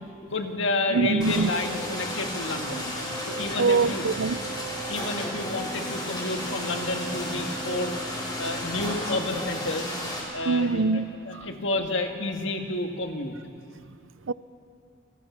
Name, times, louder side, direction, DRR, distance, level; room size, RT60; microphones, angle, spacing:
voice 1, 0.3-2.9 3.3-4.0 4.9-7.9 8.4-9.9 10.3-13.3, left 2 dB, 65° left, 4 dB, 1.9 m, -30 dB
voice 2, 0.9-1.5 3.6-4.4 10.5-11.5 14.3-14.4, right 4 dB, 80° right, 16 dB, 0.6 m, -24 dB
sound 1, 1.2-10.2, equal, 20° left, 4.3 m, -33 dB
27.5 x 20.0 x 6.0 m, 2.4 s
head